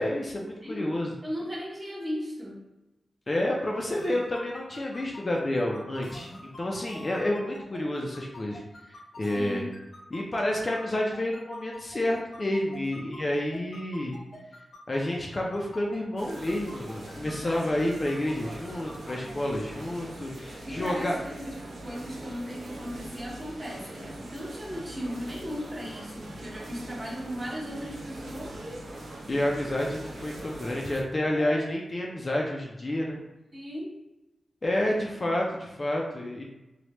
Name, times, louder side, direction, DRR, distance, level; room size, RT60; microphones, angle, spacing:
voice 1, 0.0-1.1 3.3-6.3 6.6-8.6 8.9-9.7 10.1-14.2 14.9-21.2 29.3-33.2 34.6-36.4, left 1 dB, 25° left, -1 dB, 0.3 m, -29 dB
voice 2, 1.2-2.6 9.3-9.7 13.0-13.2 17.2-17.3 20.6-21.6 21.8-28.9 31.3-31.8 33.5-34.0, equal, 20° right, -3 dB, 0.6 m, -37 dB
sound 1, 3.9-16.0 16.3-19.3, left 2 dB, 70° left, 0.8 m, -46 dB
sound 2, 16.2-31.0, right 1 dB, 80° right, 0.5 m, -42 dB
3.1 x 2.1 x 2.8 m, 0.99 s
wide cardioid pair, 175°, 0 cm